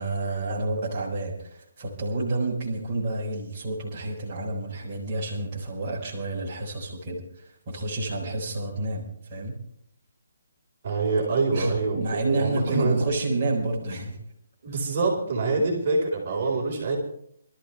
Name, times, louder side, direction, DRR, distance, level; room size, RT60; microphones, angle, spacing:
voice 1, 0.0-9.6 11.5-14.2 15.6-15.7, right 2 dB, 15° right, -8 dB, 4.2 m, -29 dB
voice 2, 10.8-13.0 14.6-17.0, right 3 dB, 35° right, -2 dB, 4.3 m, -25 dB
24.5 x 13.5 x 3.3 m, 0.69 s
hypercardioid pair, 180°, 0 cm